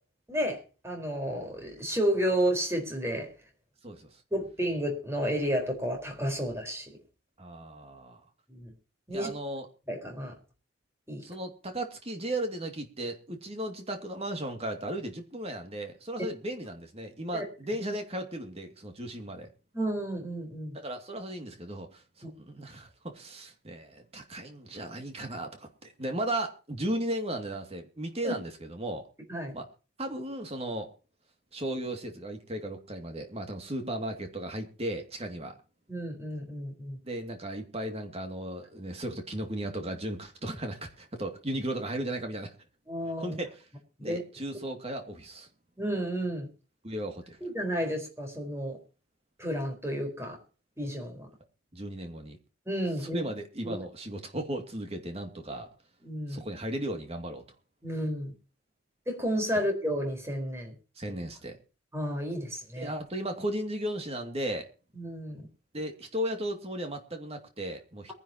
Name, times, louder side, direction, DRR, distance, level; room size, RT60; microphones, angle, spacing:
voice 1, 0.3-3.3 4.3-6.9 8.5-8.7 9.1-9.3 9.9-10.3 11.1-11.2 17.3-17.4 19.7-20.8 22.2-22.3 28.2-28.3 29.3-29.5 35.9-37.0 42.9-43.4 44.1-44.2 45.8-46.5 47.4-48.8 49.4-50.4 50.8-51.3 52.7-53.2 53.6-53.8 56.0-56.4 57.8-58.3 59.1-60.7 61.9-62.9 64.9-65.4, equal, 15° right, 3 dB, 4.6 m, -31 dB
voice 2, 3.8-4.2 7.4-8.2 9.1-9.7 11.2-19.5 20.7-29.1 29.5-29.7 30.0-30.9 31.5-35.6 37.0-42.5 43.2-43.7 44.0-45.5 46.8-47.4 51.7-52.4 53.0-55.7 56.3-57.4 61.0-61.6 62.8-64.7 65.7-68.1, right 1 dB, 30° right, 5 dB, 2.5 m, -36 dB
22.5 x 11.0 x 3.0 m, 0.35 s
head